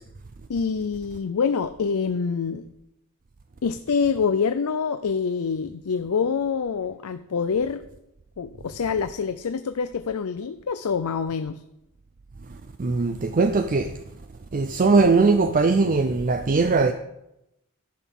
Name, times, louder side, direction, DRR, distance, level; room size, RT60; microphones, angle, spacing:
voice 1, 0.5-2.7 3.6-7.8 8.4-11.6, left 5 dB, 85° left, 0.5 m, -26 dB
voice 2, 12.8-13.9 14.5-16.9, right 3 dB, 40° right, 0.5 m, -20 dB
11.5 x 7.2 x 5.9 m
head